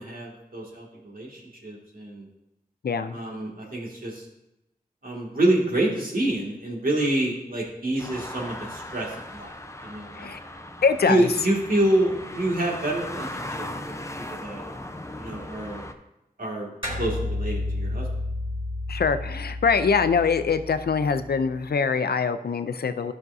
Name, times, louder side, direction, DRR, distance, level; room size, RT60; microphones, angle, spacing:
voice 1, 0.0-2.3 3.1-4.2 5.0-9.6 9.8-10.4 11.0-14.6 15.2-15.8 16.4-16.7 17.0-18.1, right 1 dB, 65° right, -3 dB, 2.2 m, -27 dB
voice 2, 2.8-3.2 10.2-10.4 10.8-11.3 18.9-23.1, left 5 dB, 85° left, 10 dB, 0.5 m, -23 dB
sound 1, 8.0-15.9, left 1 dB, 20° left, 0.7 m, -38 dB
sound 2, 16.8-21.6, left 2 dB, 35° right, 3.3 m, -32 dB
12.5 x 6.0 x 2.7 m, 0.89 s
wide cardioid pair, 45°, 16 cm